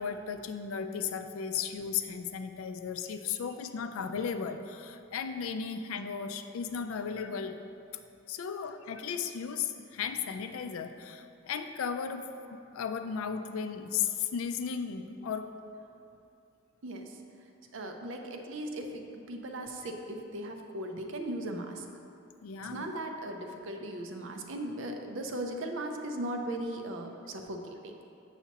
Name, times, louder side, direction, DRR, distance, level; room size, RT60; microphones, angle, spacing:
voice 1, 0.0-7.6 8.3-12.2 12.5-15.5 22.4-22.9, left 6 dB, 75° left, 8 dB, 0.4 m, -35 dB
voice 2, 16.8-17.2 17.7-21.8 22.7-28.0, right 1 dB, 60° right, 3 dB, 0.5 m, -38 dB
7.0 x 5.7 x 2.9 m, 2.6 s
head